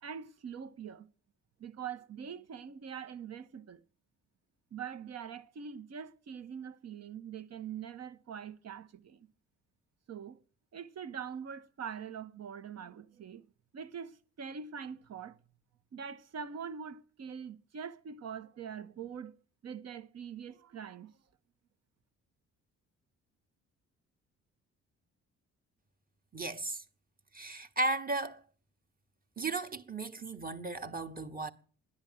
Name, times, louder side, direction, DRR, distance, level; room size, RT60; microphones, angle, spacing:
voice 1, 0.0-1.1 1.6-3.8 4.7-9.3 10.1-10.4 10.7-13.4 13.7-15.4 15.9-19.4 19.6-21.1, right 7 dB, 55° right, 1.3 m, -43 dB
voice 2, 26.3-26.8 27.3-28.4 29.4-31.5, right 2 dB, 30° right, 1.5 m, -35 dB
13.0 x 10.5 x 9.2 m
cardioid pair, 90°, 30 cm